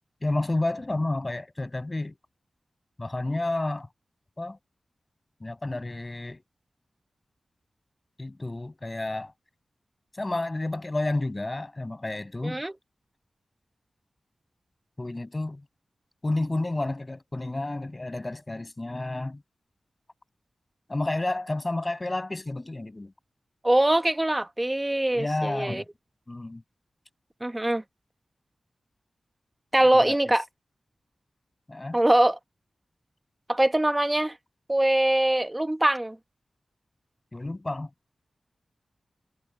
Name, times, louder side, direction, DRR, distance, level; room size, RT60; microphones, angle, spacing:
voice 1, 0.2-2.1 3.0-3.9 4.4-4.6 5.4-6.4 8.2-9.3 10.1-12.6 15.0-15.6 16.2-19.4 20.9-23.1 25.1-25.8 26.3-26.6 29.9-30.3 31.7-32.0 37.3-37.9, left 2 dB, 30° left, 6.2 m, -30 dB
voice 2, 23.6-25.8 27.4-27.8 29.7-30.4 31.9-32.4 33.5-34.4 34.7-36.2, right 1 dB, 20° right, 1.2 m, -23 dB
cardioid pair, 50°, 0 cm